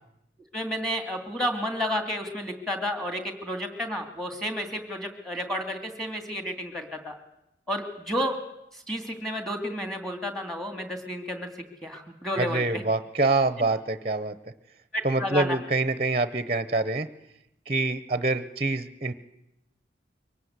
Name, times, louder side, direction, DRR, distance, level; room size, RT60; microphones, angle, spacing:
voice 1, 0.5-7.1 7.7-8.3 8.7-12.8 14.9-15.6, equal, ahead, 6 dB, 2.5 m, -31 dB
voice 2, 12.4-14.3 15.0-17.1 17.7-19.1, right 3 dB, 30° right, 13 dB, 0.8 m, -26 dB
23.5 x 18.5 x 8.1 m, 0.85 s
head